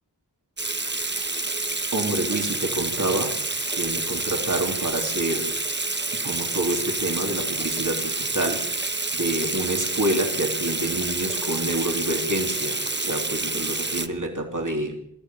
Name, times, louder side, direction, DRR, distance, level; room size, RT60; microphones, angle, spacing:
Water tap faucet / Sink (filling or washing), 0.6-14.1, right 2 dB, 25° right, 1.2 m, -28 dB
voice 1, 1.9-3.4 3.7-5.5 6.2-8.9 9.1-15.0, right 1 dB, 45° right, 2 dB, 3.4 m, -27 dB
21.5 x 14.0 x 9.2 m, 0.76 s
wide cardioid pair, 60°, 41 cm